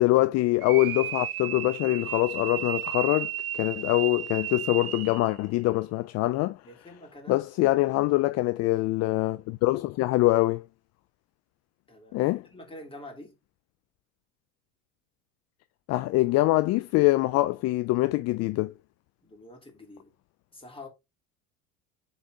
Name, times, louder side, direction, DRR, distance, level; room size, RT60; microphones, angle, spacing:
voice 1, 0.0-6.6 7.3-10.7 12.1-12.5 15.9-18.7, left 19 dB, 40° left, 0.4 m, -24 dB
sound 1, 0.6-5.3, right 11 dB, 85° right, 0.6 m, -34 dB
voice 2, 6.6-7.4 11.9-13.4 19.2-20.1 20.5-20.9, left 1 dB, 10° left, 3.1 m, -46 dB
7.0 x 4.2 x 3.7 m
hypercardioid pair, 70°, 42 cm